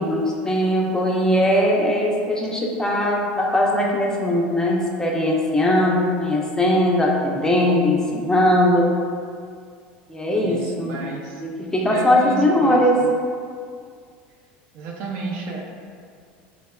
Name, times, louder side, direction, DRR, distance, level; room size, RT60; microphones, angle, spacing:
voice 1, 0.0-8.9 10.1-11.0 11.4-13.0, left 1 dB, 10° left, -2 dB, 0.4 m, -20 dB
voice 2, 10.3-11.4 11.9-12.9 14.7-15.6, right 3 dB, 60° right, 0 dB, 0.4 m, -32 dB
2.7 x 2.1 x 2.2 m, 2.1 s
supercardioid pair, 100°, 5 cm